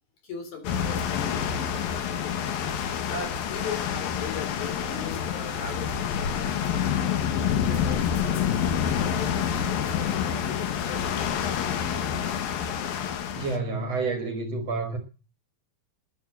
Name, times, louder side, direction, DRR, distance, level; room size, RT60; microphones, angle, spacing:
voice 1, 0.2-2.4 3.0-6.8 7.1-8.5 8.8-11.5, left 5 dB, 50° left, 5.0 m, -39 dB
sound 1, 0.6-13.6, left 8 dB, 75° left, 3.1 m, -27 dB
voice 2, 13.4-15.0, right 3 dB, 50° right, 2.3 m, -29 dB
13.0 x 10.5 x 7.7 m
omnidirectional pair, 4.3 m